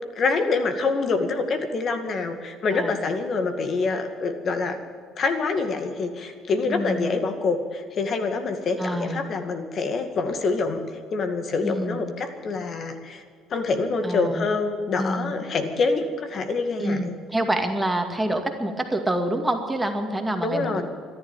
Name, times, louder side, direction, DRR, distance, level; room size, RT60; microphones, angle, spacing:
voice 1, 0.2-4.8 5.2-10.8 11.1-13.2 13.5-17.1 20.4-20.8, left 4 dB, 50° left, 7 dB, 2.1 m, -26 dB
voice 2, 6.7-7.2 8.8-9.2 11.6-12.0 14.0-14.4 15.0-15.3 16.8-20.8, right 1 dB, 10° right, 4 dB, 2.2 m, -27 dB
13.5 x 11.5 x 9.0 m, 2.1 s
supercardioid pair, 85°, 0 cm